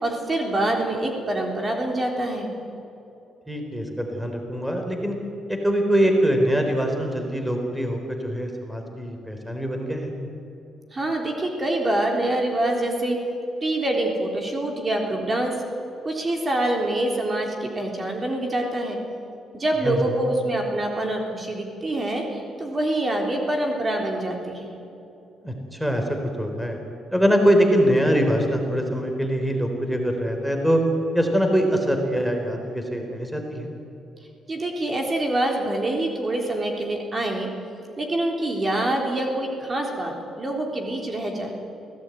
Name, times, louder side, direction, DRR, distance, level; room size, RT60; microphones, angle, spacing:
voice 1, 0.0-2.5 10.9-13.2 13.6-15.5 16.0-19.0 19.5-24.7 34.5-37.5 38.0-41.6, right 1 dB, 30° right, 1 dB, 3.8 m, -25 dB
voice 2, 3.5-5.2 5.5-10.1 19.8-20.0 25.4-26.8 27.1-30.8 31.1-33.7, equal, 5° right, 3 dB, 3.7 m, -23 dB
23.0 x 17.0 x 9.2 m, 2.8 s
cardioid pair, 90°, 0 cm